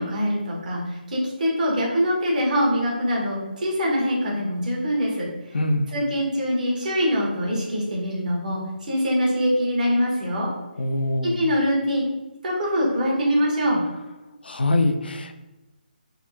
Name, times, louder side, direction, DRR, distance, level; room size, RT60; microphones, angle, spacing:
voice 1, 0.0-5.3 5.9-10.5 11.2-12.0 12.4-13.8, equal, 50° right, -3 dB, 1.0 m, -23 dB
voice 2, 5.5-5.9 10.8-11.4 14.4-15.4, left 2 dB, 75° left, 6 dB, 0.3 m, -23 dB
3.4 x 2.0 x 2.5 m, 1.1 s
figure-of-eight pair, 150°, 5 cm